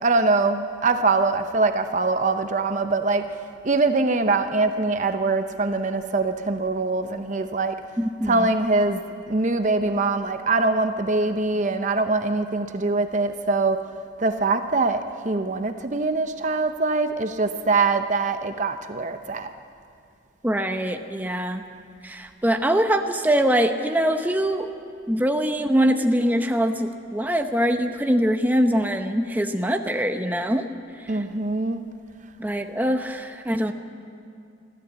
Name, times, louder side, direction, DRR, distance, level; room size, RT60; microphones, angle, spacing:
voice 1, 0.0-3.3 3.6-7.8 8.3-9.0 9.3-13.9 14.2-19.5 31.1-31.8, right 3 dB, 40° right, 8 dB, 0.7 m, -23 dB
voice 2, 8.0-8.5 20.4-21.6 22.0-24.7 25.1-30.7 31.1-31.2 32.4-33.7, equal, 10° right, 5 dB, 0.8 m, -23 dB
24.0 x 14.5 x 8.1 m, 2.4 s
head